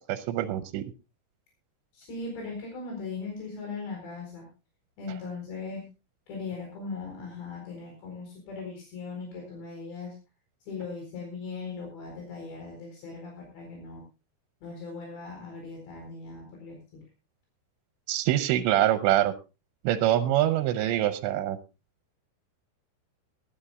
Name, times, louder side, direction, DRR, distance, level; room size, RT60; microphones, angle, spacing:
voice 1, 0.1-0.8 18.1-19.3 19.8-21.6, right 13 dB, 90° right, 11 dB, 3.1 m, -24 dB
voice 2, 1.9-4.5 5.0-5.8 6.3-10.1 10.7-14.0 14.6-17.0, left 4 dB, 80° left, 0 dB, 6.5 m, -39 dB
20.5 x 13.0 x 2.4 m, 0.29 s
omnidirectional pair, 5.0 m